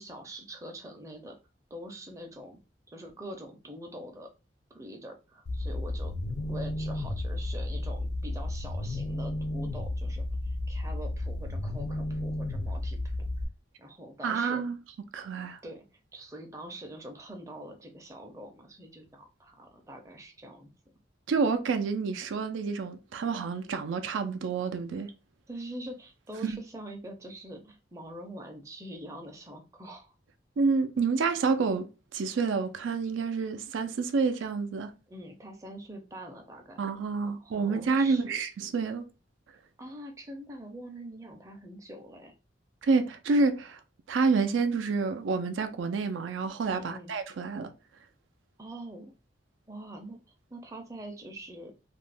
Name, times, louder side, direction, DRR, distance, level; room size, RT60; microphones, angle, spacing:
voice 1, 0.0-1.4 1.7-2.6 2.9-4.3 4.7-6.1 6.5-13.0 13.8-14.6 15.6-15.8 16.1-20.7 25.5-30.1 35.1-36.8 37.2-38.4 39.8-42.3 46.7-47.1 48.6-49.1 49.7-50.2 50.5-51.7, right 1 dB, 15° right, 0.5 m, -44 dB
sound 1, 5.5-13.5, left 1 dB, 65° left, 0.5 m, -33 dB
voice 2, 14.2-14.8 15.1-15.6 21.3-25.1 26.4-26.6 30.6-34.9 36.8-39.0 42.8-43.8 44.1-47.7, right 4 dB, 85° right, 0.4 m, -28 dB
2.4 x 2.1 x 3.3 m
head